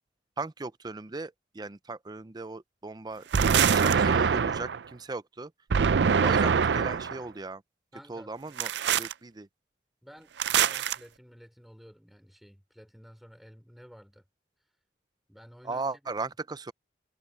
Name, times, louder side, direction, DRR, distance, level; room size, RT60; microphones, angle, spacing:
voice 1, 0.4-3.2 3.5-5.5 6.2-7.6 8.1-9.5 15.6-16.7, right 3 dB, 25° right, 0.5 m, -37 dB
sound 1, 3.3-4.8 5.7-7.2 8.6-9.1 10.4-11.0, right 6 dB, 75° right, 0.5 m, -24 dB
voice 2, 7.9-8.6 10.0-14.2 14.6-14.7 15.3-16.1, equal, ahead, 4.0 m, -52 dB
head